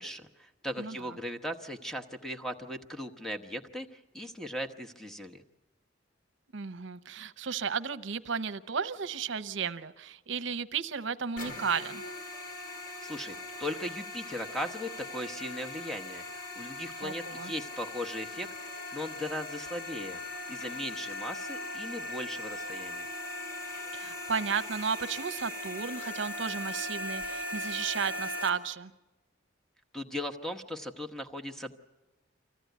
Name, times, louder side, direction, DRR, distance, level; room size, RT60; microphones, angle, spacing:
voice 1, 0.0-5.4 13.0-20.2 20.5-23.1 29.9-31.7, left 1 dB, ahead, 5 dB, 1.1 m, -38 dB
voice 2, 6.5-12.0 17.0-17.5 23.9-28.9, right 6 dB, 70° right, 11 dB, 0.7 m, -34 dB
sound 1, 11.4-28.5, left 2 dB, 45° left, 4.0 m, -39 dB
25.0 x 15.5 x 9.3 m, 1.1 s
head